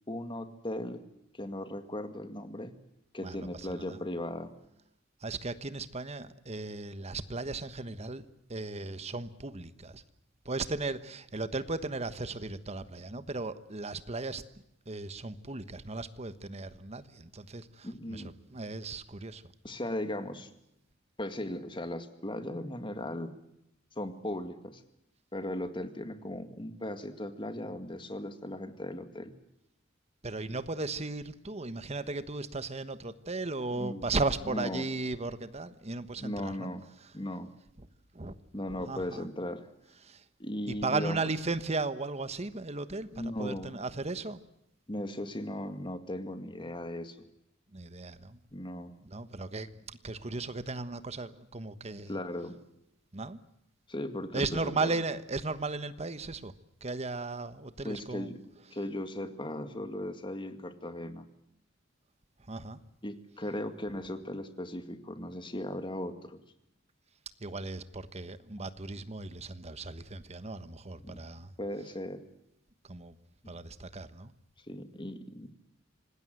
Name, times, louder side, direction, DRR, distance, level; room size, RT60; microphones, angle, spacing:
voice 1, 0.1-1.0 1.3-2.7 3.1-4.5 17.8-18.3 19.6-20.5 21.2-23.4 24.0-24.8 25.3-29.3 33.7-34.1 34.5-34.9 36.2-36.9 37.1-37.5 38.5-39.7 40.4-41.3 43.1-43.8 44.9-47.3 48.5-48.9 52.1-52.6 53.9-54.9 57.8-58.4 58.7-61.3 63.0-66.4 71.0-71.2 71.6-72.2 74.7-75.5, left 1 dB, 25° left, 2.0 m, -37 dB
voice 2, 3.2-4.0 5.2-10.0 10.4-14.4 14.9-18.2 18.5-19.4 30.2-36.7 38.1-38.4 38.8-39.3 40.0-40.2 40.7-44.4 47.7-48.4 49.0-52.1 53.1-53.4 54.3-56.5 56.8-58.3 62.5-62.8 67.4-71.5 72.9-73.1 73.5-74.3, right 3 dB, 35° right, 1.2 m, -36 dB
26.5 x 19.0 x 7.8 m
head